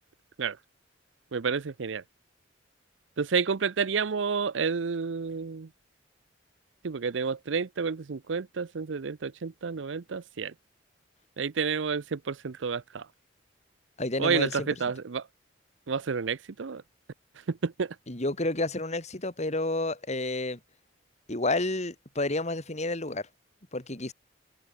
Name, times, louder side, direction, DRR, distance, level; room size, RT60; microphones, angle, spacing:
voice 1, 1.3-2.0 3.2-5.7 6.8-10.5 11.4-13.0 14.2-15.2 15.9-16.8 17.5-17.9, right 5 dB, 80° right, 0.6 m, -30 dB
voice 2, 14.0-14.8 18.1-20.6 21.3-23.3 23.7-24.1, left 2 dB, 40° left, 3.1 m, -30 dB
head